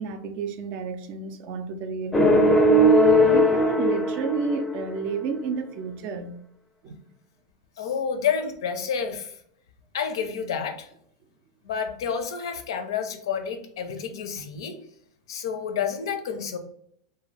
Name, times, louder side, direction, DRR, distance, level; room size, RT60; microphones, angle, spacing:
voice 1, 0.0-2.5 3.2-6.4 6.8-7.0, right 5 dB, 50° right, 0.4 m, -31 dB
sound 1, 2.1-5.0, equal, 10° left, 0.4 m, -18 dB
voice 2, 7.8-9.3 9.9-10.9 11.6-14.7 15.3-16.6, left 7 dB, 80° left, 0.5 m, -29 dB
2.6 x 2.2 x 3.2 m
hypercardioid pair, 120°, 3 cm